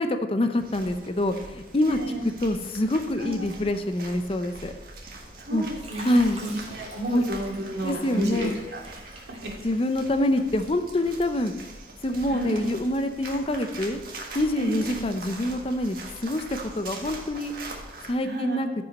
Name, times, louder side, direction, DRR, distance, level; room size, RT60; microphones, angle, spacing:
voice 1, 0.0-2.0 2.4-4.7 5.5-5.7 6.0-6.4 7.1-7.2 7.8-8.6 9.6-11.5 12.0-14.0 14.3-17.5 18.1-18.7, left 1 dB, 30° left, 8 dB, 0.5 m, -26 dB
sound 1, 0.6-18.1, right 2 dB, 55° right, 1.6 m, -42 dB
voice 2, 1.8-2.2 3.2-3.4 5.4-8.8 9.1-9.5 12.3-12.6 14.6-15.0 18.2-18.6, right 1 dB, 75° right, -1 dB, 2.2 m, -31 dB
Fill (with liquid), 5.1-5.4 5.8-10.2 10.6-11.5 12.0-12.2, right 2 dB, 40° right, 2.6 m, -45 dB
14.5 x 5.5 x 4.1 m, 1.1 s
head